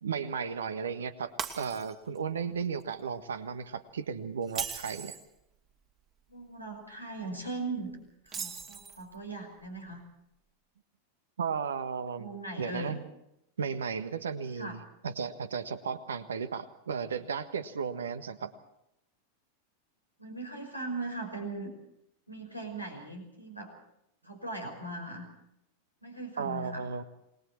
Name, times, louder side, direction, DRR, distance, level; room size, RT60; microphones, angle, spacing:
voice 1, 0.0-1.3 1.6-5.2 11.4-12.3 12.6-13.0 13.6-18.5 26.4-27.0, right 6 dB, 65° right, 12 dB, 1.5 m, -34 dB
Shatter, 1.4-2.2 2.6-2.8 4.4-5.3 8.3-9.1, right 6 dB, 30° right, 2.5 m, -38 dB
voice 2, 6.3-7.9 8.2-10.0 12.2-13.0 14.6-14.8 20.2-21.7 22.3-23.7 24.2-25.3 26.0-26.8, right 2 dB, 90° right, 2 dB, 5.4 m, -39 dB
28.5 x 20.5 x 4.5 m, 0.82 s
figure-of-eight pair, 90°, 0 cm